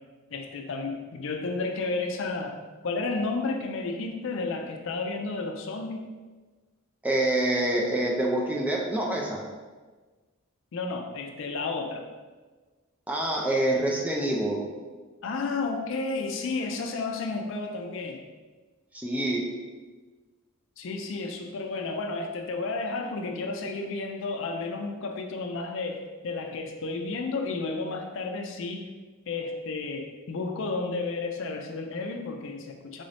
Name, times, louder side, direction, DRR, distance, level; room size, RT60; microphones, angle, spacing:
voice 1, 0.3-2.6 2.8-6.1 10.7-12.0 15.2-18.2 20.8-28.8 29.3-33.0, left 3 dB, 60° left, 3 dB, 0.4 m, -32 dB
voice 2, 7.0-9.4 13.1-14.6 18.9-19.5, right 1 dB, 5° right, -2 dB, 0.4 m, -26 dB
3.7 x 2.6 x 3.3 m, 1.3 s
head